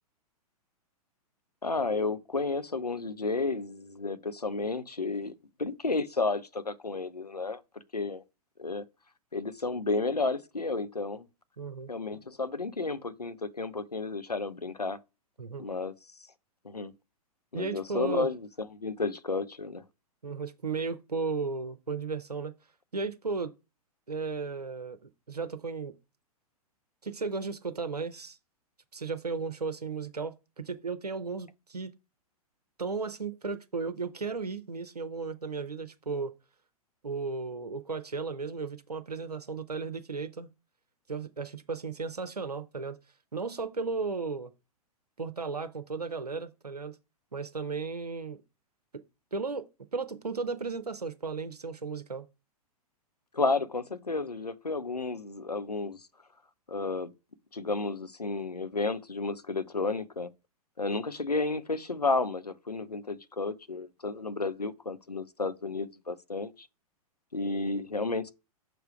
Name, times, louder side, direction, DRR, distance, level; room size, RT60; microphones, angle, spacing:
voice 1, 1.6-5.3 5.6-7.6 7.9-8.2 8.6-8.8 9.3-11.3 11.9-15.0 15.6-15.9 16.6-16.9 17.5-19.8 53.3-56.0 56.7-57.1 57.5-60.3 60.8-66.7 67.3-68.3, left 3 dB, 90° left, 0.7 m, -32 dB
voice 2, 11.6-11.9 15.4-15.6 17.5-18.3 20.2-22.5 22.9-23.5 24.1-25.0 25.3-26.0 27.0-28.4 28.9-31.9 32.8-36.3 37.0-40.5 41.1-43.0 43.3-44.5 45.2-47.0 47.3-48.4 48.9-49.0 49.3-49.7 49.9-52.3, right 4 dB, 85° right, 0.7 m, -35 dB
6.1 x 3.4 x 5.0 m
figure-of-eight pair, 105°, 20 cm